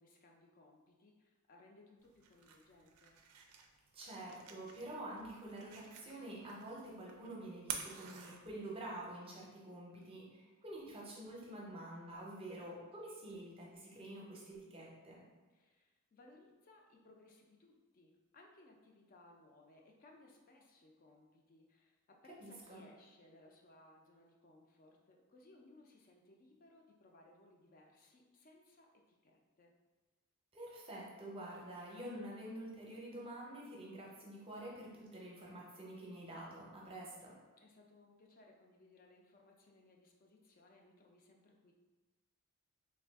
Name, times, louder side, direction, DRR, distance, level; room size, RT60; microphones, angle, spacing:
voice 1, 0.0-3.2 15.5-29.7 37.6-41.7, left 2 dB, 40° left, 1 dB, 0.4 m, -63 dB
sound 1, 2.0-9.0, right 7 dB, 85° right, 0.4 m, -51 dB
voice 2, 3.9-15.2 22.4-22.8 30.5-37.3, right 1 dB, 25° right, -3 dB, 0.6 m, -48 dB
3.4 x 2.3 x 3.4 m, 1.3 s
head